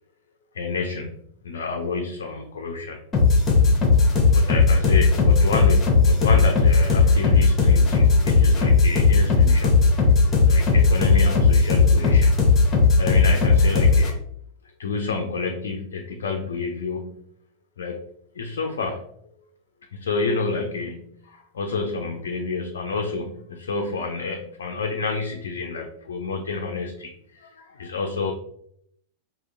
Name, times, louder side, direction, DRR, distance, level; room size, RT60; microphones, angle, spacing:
voice 1, 0.5-1.1 1.4-3.0 4.1-9.7 10.5-12.4 13.0-14.2 14.8-17.2 17.8-18.0 18.4-19.3 19.9-28.3, left 4 dB, 65° left, 2 dB, 0.4 m, -29 dB
sound 1, 3.1-14.1, left 4 dB, 25° left, 0.8 m, -17 dB
4.9 x 2.5 x 2.5 m, 0.69 s
figure-of-eight pair, 90°, 0 cm